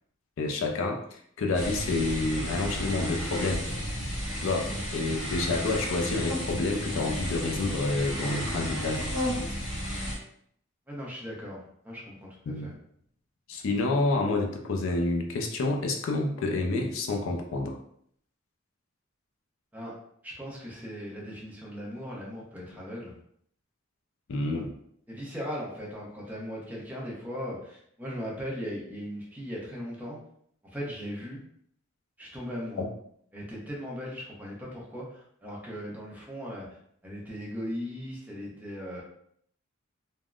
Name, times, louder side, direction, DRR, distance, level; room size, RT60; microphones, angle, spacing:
voice 1, 0.4-3.6 4.4-9.1 12.5-12.7 13.5-17.8 24.3-24.7 32.8-32.9, left 2 dB, 70° left, 3 dB, 0.4 m, -29 dB
sound 1, 1.5-10.2, equal, 90° left, 1.1 m, -32 dB
voice 2, 10.9-12.7 19.7-19.9 20.2-23.1 24.5-24.6 25.1-30.2 30.6-31.4 32.2-32.8 33.3-36.6 37.0-39.0, equal, 10° right, -4 dB, 0.7 m, -38 dB
3.5 x 2.0 x 2.3 m, 0.67 s
head